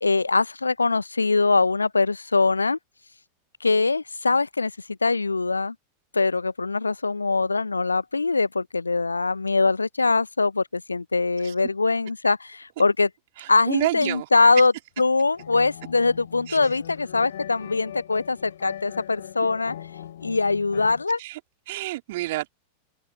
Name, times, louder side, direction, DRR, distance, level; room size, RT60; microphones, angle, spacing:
voice 1, 0.0-2.8 3.6-4.7 5.0-5.7 6.1-13.1 13.5-14.7 15.0-19.8 20.2-21.2, left 3 dB, 80° left, 0.8 m, -22 dB
voice 2, 13.4-14.3 16.5-16.6 21.2-21.4 21.7-22.6, right 17 dB, 55° right, 3.9 m, -29 dB
sound 1, 15.3-21.0, left 11 dB, 60° left, 5.3 m, -40 dB
open air
figure-of-eight pair, 90°, 0 cm